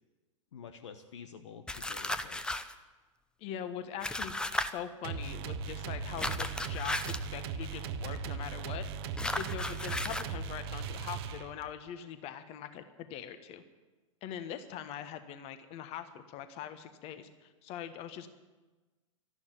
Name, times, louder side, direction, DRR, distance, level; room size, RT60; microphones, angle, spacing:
voice 1, 0.5-2.6 9.2-9.4, left 7 dB, 65° left, 8 dB, 1.0 m, -49 dB
sound 1, 1.7-2.7 4.0-4.7 6.2-7.3 9.2-10.3, left 1 dB, 5° left, 0.7 m, -35 dB
voice 2, 3.4-8.8 9.4-13.6 14.2-18.3, left 9 dB, 35° left, 10 dB, 1.4 m, -42 dB
sound 2, 5.0-11.8, right 6 dB, 50° right, 1.0 m, -38 dB
13.0 x 11.5 x 9.2 m, 1.2 s
figure-of-eight pair, 95°, 17 cm